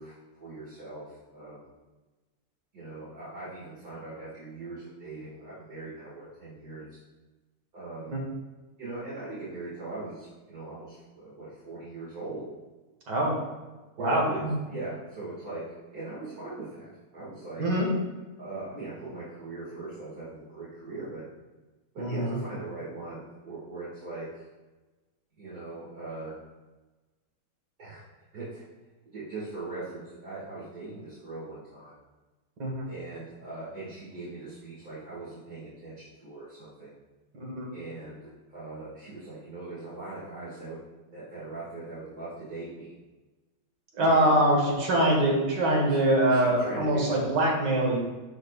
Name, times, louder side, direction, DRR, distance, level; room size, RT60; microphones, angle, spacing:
voice 1, 0.0-1.7 2.7-7.0 7.7-8.1 8.8-12.4 14.0-14.4 14.7-15.6 15.9-17.6 18.4-21.2 21.9-24.4 25.4-26.3 27.8-28.0 28.3-28.6 29.1-31.9 32.9-36.9 37.7-38.2 38.5-40.8 41.1-42.9 44.0-44.4 45.9-46.0 46.2-47.2, right 2 dB, 55° right, -10 dB, 2.4 m, -40 dB
voice 2, 14.0-14.5 17.6-17.9 22.0-22.4 32.6-32.8 37.4-37.7 43.9-48.0, right 1 dB, 75° right, -1 dB, 2.1 m, -24 dB
12.0 x 4.3 x 2.4 m, 1.2 s
omnidirectional pair, 1.9 m